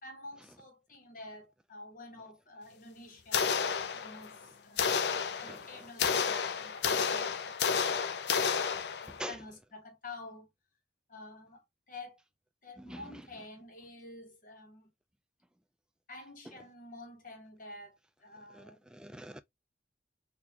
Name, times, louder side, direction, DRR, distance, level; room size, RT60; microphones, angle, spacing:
voice 1, 0.0-5.1 5.4-7.7 8.4-10.5 11.1-12.2 12.6-14.9 16.1-18.8, left 2 dB, 45° left, 1.4 m, -49 dB
sound 1, 3.3-4.4 4.8-9.3, left 6 dB, 65° left, 0.5 m, -31 dB
voice 2, 12.9-13.2 18.5-18.7 18.9-19.4, right 1 dB, 5° right, 0.3 m, -42 dB
4.0 x 2.7 x 2.8 m
head